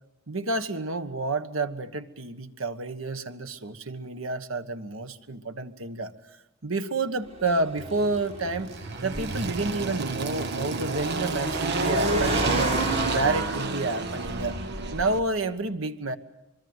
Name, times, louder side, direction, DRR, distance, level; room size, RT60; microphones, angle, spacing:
voice 1, 0.3-6.1 6.6-8.7 9.0-12.8 13.1-14.6 14.9-16.2, right 3 dB, 90° right, 9 dB, 1.3 m, -29 dB
Car, 7.3-15.2, right 1 dB, 35° right, 4.9 m, -34 dB
Engine, 7.8-15.2, right 3 dB, 55° right, 1.1 m, -30 dB
24.0 x 23.5 x 8.0 m, 0.94 s
head